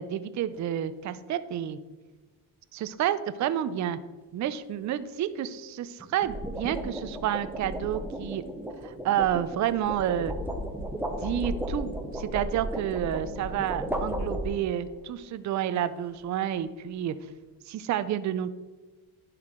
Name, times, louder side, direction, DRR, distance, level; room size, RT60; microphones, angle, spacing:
voice 1, 0.0-1.8 2.8-4.0 4.3-8.4 8.8-10.3 11.2-17.1 17.7-18.5, right 10 dB, 40° right, 13 dB, 0.5 m, -30 dB
sound 1, 0.5-0.8 6.0-14.9, equal, 5° right, 0.8 m, -34 dB
11.0 x 4.6 x 3.7 m, 1.2 s
cardioid pair, 110°, 45 cm